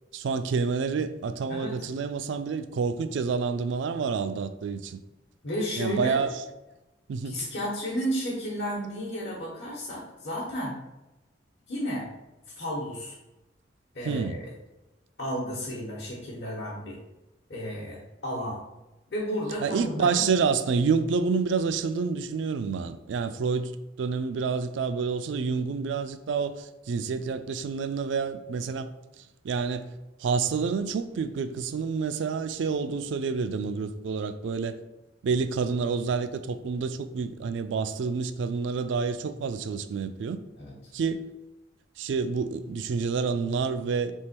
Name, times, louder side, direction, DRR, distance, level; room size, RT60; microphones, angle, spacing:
voice 1, 0.1-5.0 5.8-6.4 7.1-7.4 14.0-14.4 19.6-23.7 24.0-28.9 29.4-29.9 30.2-34.8 35.2-40.4 40.9-41.2 42.0-44.1, right 5 dB, 75° right, 0.3 m, -28 dB
voice 2, 5.4-6.1 7.2-10.7 11.7-12.1 12.6-13.2 13.9-14.5 15.2-17.0 17.5-18.6 19.1-20.3 40.6-40.7, equal, 65° left, 1.1 m, -32 dB
3.7 x 2.9 x 4.3 m
head